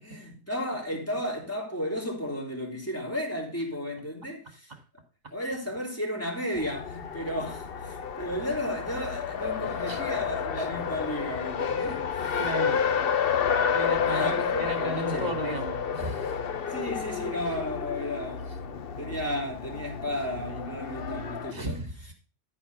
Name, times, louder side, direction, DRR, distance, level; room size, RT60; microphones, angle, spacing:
voice 1, 0.0-4.7 5.3-12.4 14.0-15.6 16.5-18.5 19.0-21.8, equal, 10° left, 3.5 m, -34 dB
Race car auto racing, 6.5-21.5, left 7 dB, 55° left, 0.9 m, -30 dB
voice 2, 12.4-12.8 13.7-16.4 21.5-21.9, right 2 dB, 35° right, 2.2 m, -34 dB
13.0 x 5.0 x 6.9 m
omnidirectional pair, 1.2 m